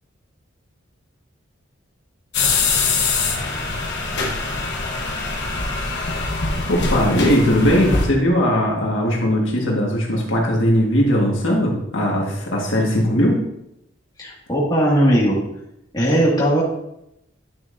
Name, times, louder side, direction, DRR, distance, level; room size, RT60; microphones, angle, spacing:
sound 1, 2.3-8.1, left 3 dB, 55° left, 1.3 m, -23 dB
voice 1, 6.7-13.4, equal, 75° left, -2 dB, 1.7 m, -19 dB
voice 2, 14.2-15.4 15.9-16.6, equal, 20° left, -6 dB, 2.1 m, -18 dB
10.5 x 6.4 x 2.7 m, 0.81 s
head